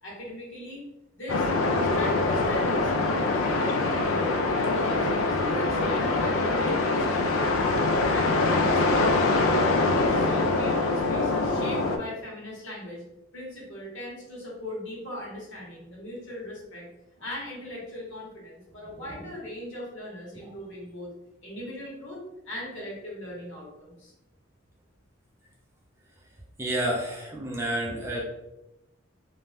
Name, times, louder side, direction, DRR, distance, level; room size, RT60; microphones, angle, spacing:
voice 1, 0.0-4.3 4.5-5.1 5.4-7.7 8.1-13.0 13.3-16.9 17.2-21.1 21.4-24.1 27.0-27.2, left 1 dB, 65° left, -4 dB, 1.1 m, -39 dB
sound 1, 1.3-12.0, left 2 dB, 80° left, 0.3 m, -24 dB
voice 2, 26.6-28.2, right 1 dB, 15° right, -2 dB, 0.3 m, -30 dB
2.5 x 2.2 x 3.2 m, 0.92 s
head